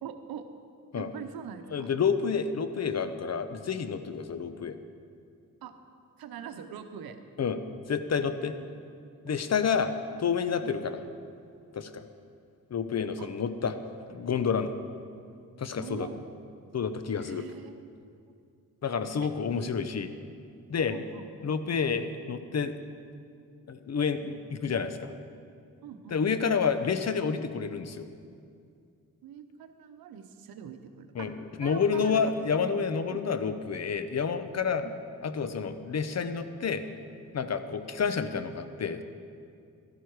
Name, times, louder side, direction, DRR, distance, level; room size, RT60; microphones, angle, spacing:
voice 1, 0.0-0.5 0.9-1.9 4.2-4.3 5.6-5.7 6.2-7.2 8.4-9.2 10.6-10.8 13.2-13.3 15.8-16.2 17.2-17.8 19.5-19.6 20.9-21.5 25.8-26.4 29.2-31.3 31.6-32.6 33.1-33.2 34.8-35.0 37.5-37.6, right 8 dB, 90° right, 8 dB, 0.9 m, -43 dB
voice 2, 1.7-4.8 7.4-7.6 7.9-8.5 9.2-9.9 10.2-11.0 11.7-12.0 12.7-13.8 14.1-14.8 15.6-16.1 16.7-17.4 18.8-20.1 20.7-20.9 21.4-22.7 23.7-25.1 26.1-28.1 31.1-31.3 31.6-34.8 35.2-36.8 37.3-39.0, left 6 dB, 45° left, 10 dB, 0.8 m, -29 dB
12.0 x 11.0 x 4.7 m, 2.4 s
cardioid pair, 65°, 35 cm